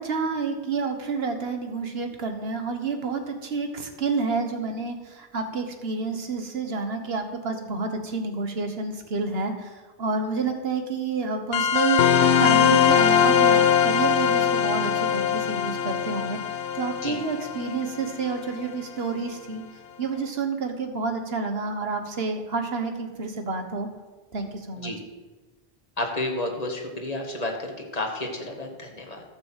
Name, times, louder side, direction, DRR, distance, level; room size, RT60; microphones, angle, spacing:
voice 1, 0.0-16.4 16.7-19.6 20.0-23.9 24.3-24.9, right 4 dB, 70° right, 6 dB, 1.5 m, -29 dB
sound 1, 11.5-18.6, left 8 dB, 90° left, 1.0 m, -21 dB
voice 2, 26.0-27.5 27.9-29.2, left 2 dB, 35° left, 2 dB, 1.7 m, -30 dB
13.0 x 6.2 x 7.4 m, 1.2 s
omnidirectional pair, 1.1 m